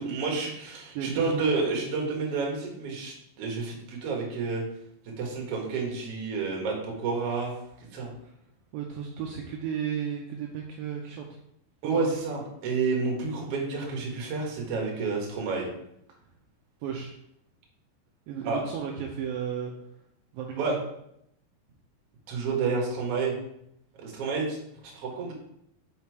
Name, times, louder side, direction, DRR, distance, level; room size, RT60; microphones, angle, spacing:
voice 1, 0.0-4.6 5.0-7.5 7.9-8.1 11.8-15.7 18.4-18.6 20.6-20.7 22.3-23.3 24.0-24.6 24.9-25.3, right 4 dB, 50° right, -1 dB, 2.0 m, -29 dB
voice 2, 0.9-1.4 8.7-11.3 11.8-12.1 16.8-17.2 18.3-19.7 20.3-20.8, right 8 dB, 80° right, 1 dB, 2.3 m, -34 dB
5.7 x 5.3 x 4.6 m, 0.76 s
omnidirectional pair, 4.4 m